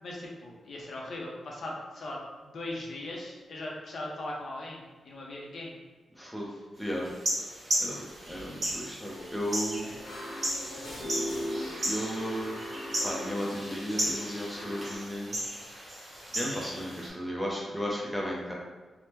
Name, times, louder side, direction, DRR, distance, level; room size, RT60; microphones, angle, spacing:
voice 1, 0.0-5.8 9.8-10.0 10.7-10.8, left 1 dB, 55° left, -2 dB, 0.6 m, -39 dB
voice 2, 6.1-6.5 6.8-7.1 7.8-9.9 11.8-12.6 13.0-15.4 16.3-18.5, equal, ahead, -3 dB, 0.5 m, -34 dB
sound 1, 7.1-17.1, right 1 dB, 35° right, 0.9 m, -35 dB
sound 2, 8.6-8.8 9.1-9.3 10.0-15.0, equal, 75° left, 0.9 m, -39 dB
3.4 x 2.0 x 2.9 m, 1.3 s
wide cardioid pair, 165°, 0 cm